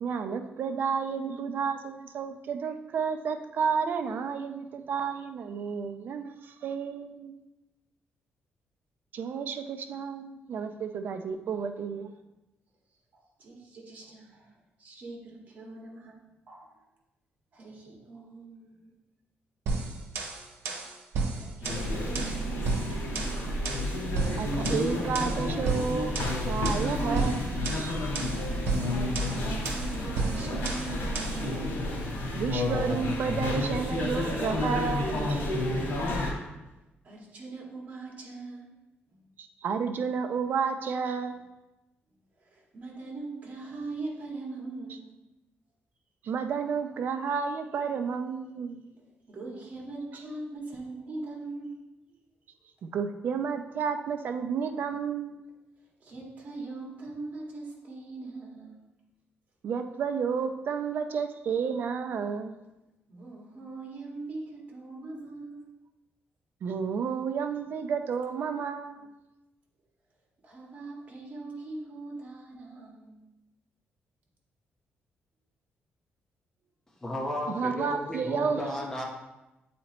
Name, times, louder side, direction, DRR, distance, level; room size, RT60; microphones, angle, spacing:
voice 1, 0.0-7.4 9.1-12.1 24.4-28.0 32.3-35.5 39.4-41.4 46.2-48.9 52.8-55.4 59.6-62.5 66.6-69.2 77.5-78.7, right 6 dB, 55° right, 7 dB, 0.5 m, -31 dB
voice 2, 13.1-16.2 16.5-16.8 17.5-18.9 21.2-23.7 29.3-31.7 36.6-38.7 39.1-39.2 42.1-45.1 48.9-52.2 56.0-58.8 63.1-65.6 70.4-73.2, right 3 dB, 40° right, -2 dB, 1.7 m, -42 dB
sound 1, 19.7-31.5, right 4 dB, 85° right, 1.0 m, -33 dB
sound 2, 21.6-36.3, left 1 dB, 90° left, 1.8 m, -30 dB
voice 3, 77.0-79.0, left 1 dB, 15° left, 0 dB, 0.8 m, -34 dB
8.7 x 4.2 x 2.9 m, 0.99 s
cardioid pair, 145°, 4 cm